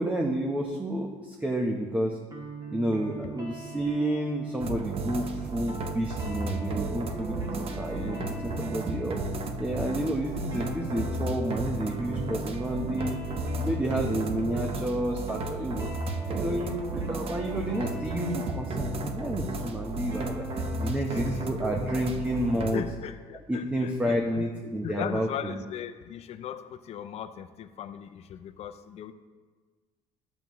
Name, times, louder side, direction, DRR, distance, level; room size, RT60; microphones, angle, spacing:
voice 1, 0.0-2.2 2.7-9.2 9.6-13.2 13.6-15.9 16.3-16.8 17.1-20.4 20.8-22.8 23.5-25.5, right 1 dB, 10° right, 1 dB, 1.0 m, -30 dB
sound 1, 2.3-21.4, right 2 dB, 30° right, 1.8 m, -42 dB
sound 2, 4.6-22.8, right 2 dB, 45° right, 1.0 m, -33 dB
voice 2, 7.9-8.3 8.7-8.9 20.9-21.4 22.7-29.1, left 9 dB, 50° left, 10 dB, 0.6 m, -38 dB
12.0 x 7.2 x 3.1 m, 1.5 s
cardioid pair, 100°, 14 cm